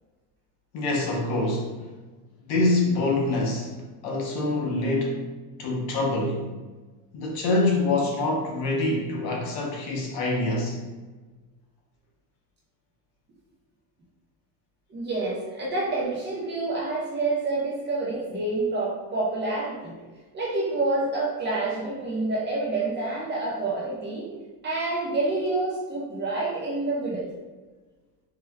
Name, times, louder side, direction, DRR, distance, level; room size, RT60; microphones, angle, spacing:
voice 1, 0.7-1.8 2.4-3.7 4.0-5.3 5.6-6.5 7.1-10.8, left 2 dB, 75° left, -1 dB, 0.9 m, -25 dB
voice 2, 14.9-19.9 20.3-24.3 24.6-27.3, right 2 dB, 25° right, -5 dB, 0.6 m, -28 dB
4.4 x 2.2 x 2.2 m, 1.3 s
cardioid pair, 160°, 44 cm